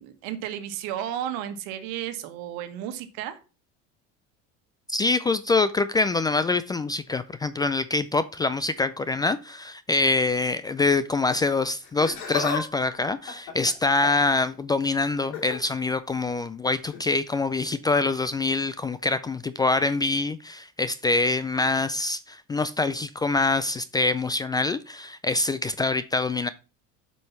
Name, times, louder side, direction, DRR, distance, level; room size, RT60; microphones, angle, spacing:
voice 1, 0.0-3.4, right 11 dB, 75° right, 1.5 m, -33 dB
voice 2, 4.9-26.5, left 3 dB, 15° left, 0.3 m, -25 dB
Laughter, 11.8-12.6 12.9-14.3 15.2-15.6 16.9-17.1 18.0-18.1, left 5 dB, 90° left, 3.1 m, -33 dB
7.7 x 5.4 x 5.7 m
cardioid pair, 135°, 29 cm